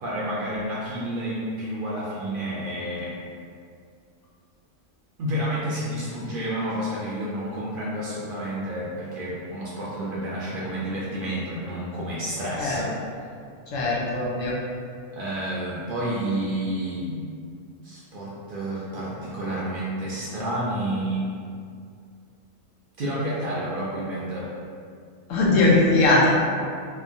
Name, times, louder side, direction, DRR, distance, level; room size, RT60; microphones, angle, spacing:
voice 1, 0.0-3.2 5.2-12.9 15.1-17.2 17.8-21.2 23.0-24.5, right 1 dB, 65° right, -7 dB, 0.5 m, -30 dB
voice 2, 13.7-14.6 25.3-26.3, left 2 dB, 80° left, -5 dB, 1.0 m, -20 dB
3.0 x 2.1 x 2.5 m, 2.3 s
omnidirectional pair, 1.3 m